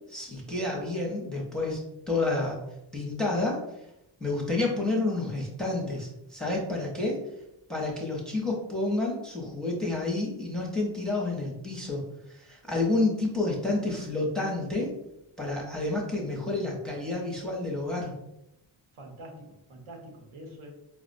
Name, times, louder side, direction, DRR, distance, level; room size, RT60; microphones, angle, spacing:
voice 1, 0.1-1.8 2.1-2.6 2.9-3.6 4.2-7.2 7.7-12.0 12.3-14.9 15.4-18.1, left 2 dB, ahead, -2 dB, 0.5 m, -29 dB
voice 2, 18.9-20.7, right 1 dB, 75° right, 2 dB, 0.9 m, -45 dB
4.7 x 2.0 x 2.5 m, 0.83 s
wide cardioid pair, 155°, 48 cm